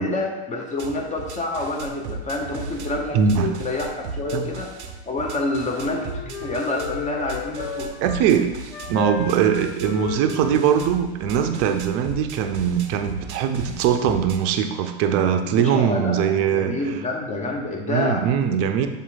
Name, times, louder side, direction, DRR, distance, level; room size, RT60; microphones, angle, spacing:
voice 1, 0.0-4.7 5.1-8.0 15.6-18.3, left 2 dB, 20° left, 1 dB, 1.2 m, -28 dB
sound 1, 0.8-14.4, right 3 dB, 85° right, 0.7 m, -36 dB
voice 2, 3.1-3.5 4.3-4.5 8.0-16.7 17.9-18.9, right 8 dB, 45° right, 7 dB, 0.6 m, -21 dB
Wind instrument woodwind instrument, 5.1-8.2 8.7-11.9, left 6 dB, 45° left, 0.8 m, -35 dB
6.3 x 3.8 x 3.9 m, 1.0 s
hypercardioid pair, 90°, 33 cm